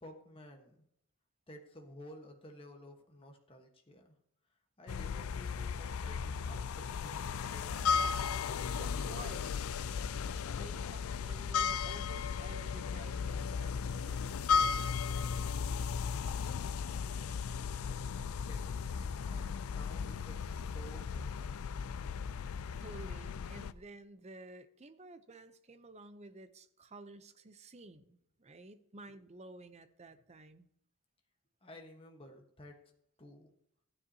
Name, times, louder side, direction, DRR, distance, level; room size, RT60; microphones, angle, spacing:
voice 1, 0.0-0.8 1.5-4.2 4.8-8.2 17.8-21.9 31.6-32.9 33.2-33.5, left 1 dB, 25° left, 2 dB, 1.2 m, -54 dB
sound 1, 4.9-23.7, left 6 dB, 70° left, 0.4 m, -35 dB
voice 2, 8.7-9.5 10.5-14.4 22.8-30.7, right 2 dB, 30° right, 10 dB, 0.6 m, -52 dB
14.5 x 9.7 x 2.8 m, 0.70 s
head